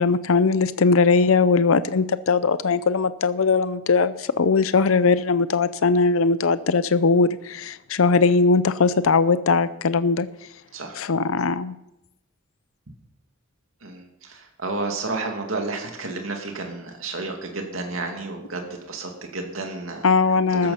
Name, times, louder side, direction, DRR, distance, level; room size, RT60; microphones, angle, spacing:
voice 1, 0.0-10.3 11.0-11.7 20.0-20.7, left 4 dB, 80° left, 14 dB, 0.6 m, -20 dB
voice 2, 13.8-20.1 20.5-20.7, right 3 dB, 75° right, 3 dB, 2.4 m, -31 dB
14.5 x 13.5 x 5.7 m, 0.85 s
head